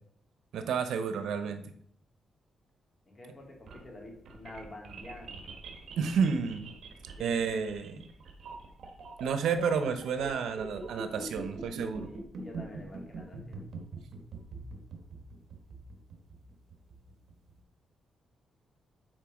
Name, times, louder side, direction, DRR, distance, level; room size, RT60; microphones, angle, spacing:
voice 1, 0.5-1.6 6.0-6.7 7.2-8.0 9.2-12.1, right 6 dB, 85° right, 8 dB, 0.9 m, -30 dB
voice 2, 3.1-5.4 7.2-7.6 12.0-13.7, left 2 dB, 30° left, 0 dB, 2.6 m, -48 dB
sound 1, 3.4-17.5, right 3 dB, 65° right, 1.6 m, -44 dB
9.0 x 4.5 x 5.1 m, 0.67 s
cardioid pair, 125°, 0 cm